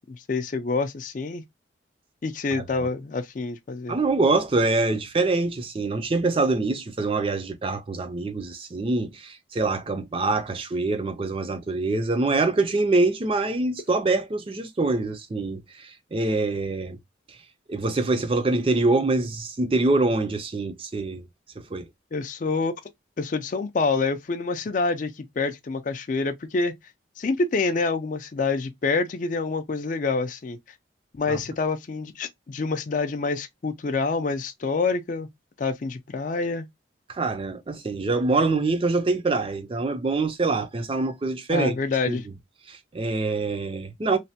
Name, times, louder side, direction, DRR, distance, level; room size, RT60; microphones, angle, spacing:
voice 1, 0.1-1.4 2.2-4.0 22.1-22.7 23.2-26.7 27.2-30.6 31.1-35.3 35.6-36.7 41.5-42.2, left 4 dB, 40° left, 0.4 m, -27 dB
voice 2, 2.5-2.9 3.9-17.0 17.7-21.2 21.6-21.9 31.3-31.4 37.1-41.8 42.1-42.2 42.7-44.2, right 3 dB, 30° right, 0.4 m, -25 dB
3.1 x 2.1 x 2.7 m
head